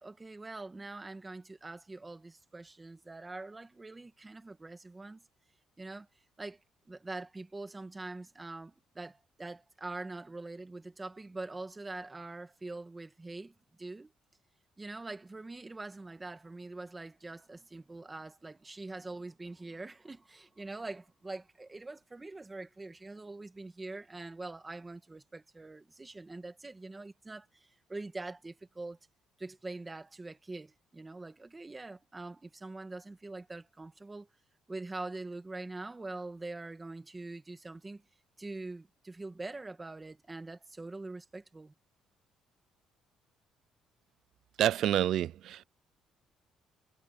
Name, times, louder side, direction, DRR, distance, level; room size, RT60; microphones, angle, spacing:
voice 1, 0.0-5.2 5.8-6.1 6.4-6.6 6.9-14.1 14.8-29.0 29.4-34.3 34.7-38.0 38.4-41.7, right 2 dB, 15° right, 1.9 m, -44 dB
voice 2, 44.6-45.6, right 12 dB, 60° right, 0.3 m, -28 dB
cardioid pair, 170°, 0 cm